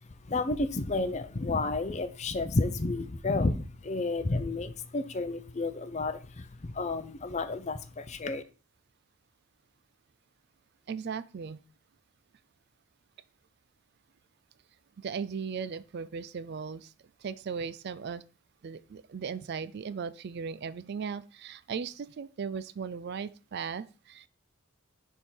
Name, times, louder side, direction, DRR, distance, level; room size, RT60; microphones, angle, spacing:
voice 1, 0.3-8.4, left 3 dB, 30° left, 11 dB, 0.6 m, -31 dB
voice 2, 10.9-11.6 15.0-16.9 17.2-18.2 18.6-24.3, right 6 dB, 50° right, 15 dB, 0.4 m, -37 dB
6.8 x 3.7 x 6.1 m, 0.36 s
head